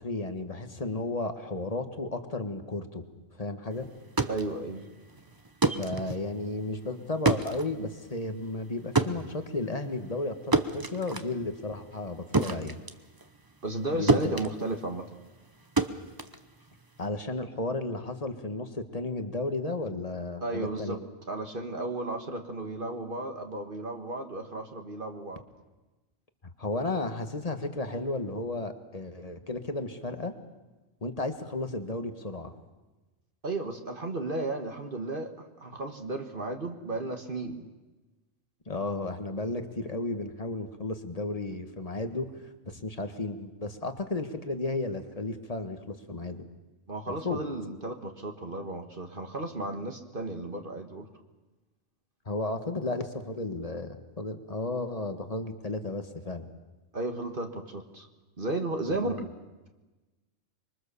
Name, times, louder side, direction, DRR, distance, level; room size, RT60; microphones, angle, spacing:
voice 1, 0.0-3.0 3.4-3.9 5.8-12.8 13.9-14.3 17.0-21.0 26.6-30.3 31.0-32.5 38.6-46.4 47.1-47.4 52.2-56.5 58.9-59.3, left 2 dB, 30° left, 7 dB, 1.6 m, -33 dB
sound 1, 3.9-13.8 14.1-17.1, right 3 dB, 20° right, 0.8 m, -30 dB
voice 2, 4.3-4.9 13.6-15.1 20.4-21.0 21.3-25.4 33.4-37.7 46.9-51.1 56.9-58.1 58.4-59.2, right 2 dB, 40° right, 4 dB, 1.7 m, -34 dB
25.5 x 23.0 x 7.0 m, 1.2 s
omnidirectional pair, 1.4 m